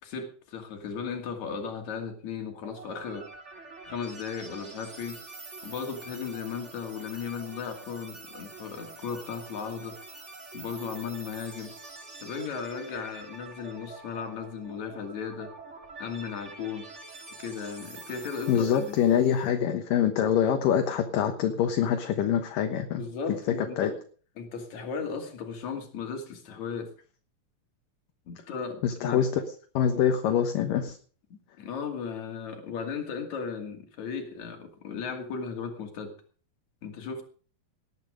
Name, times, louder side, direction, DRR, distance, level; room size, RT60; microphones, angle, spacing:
voice 1, 0.0-3.3 3.8-5.2 5.6-10.0 10.5-11.8 12.2-15.5 16.0-16.9 17.4-19.0 23.0-24.0 24.4-26.9 28.3-29.3 31.3-36.1 36.8-37.2, left 6 dB, 50° left, 4 dB, 3.5 m, -36 dB
sound 1, 2.6-19.5, right 3 dB, 25° right, 2.0 m, -46 dB
voice 2, 18.5-23.0 23.8-23.9 28.8-29.3 29.7-31.0, left 8 dB, 70° left, 6 dB, 2.7 m, -25 dB
18.5 x 10.5 x 5.1 m, 0.41 s
omnidirectional pair, 4.3 m